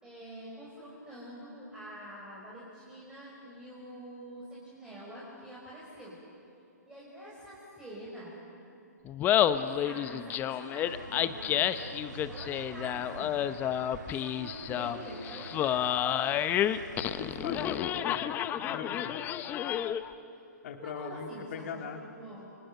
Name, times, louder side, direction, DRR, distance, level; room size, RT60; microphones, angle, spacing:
voice 1, 0.0-6.2 6.9-8.4 9.5-15.8 20.8-22.5, right 1 dB, 10° right, -6 dB, 5.8 m, -46 dB
Laughter, 9.1-20.1, left 10 dB, 20° left, 0.9 m, -30 dB
sound 1, 10.8-17.8, right 3 dB, 85° right, 2.3 m, -47 dB
voice 2, 17.2-18.4 18.7-19.3 20.6-22.0, left 7 dB, 50° left, 4 dB, 2.4 m, -40 dB
29.5 x 29.0 x 6.7 m, 2.9 s
hypercardioid pair, 135°, 10 cm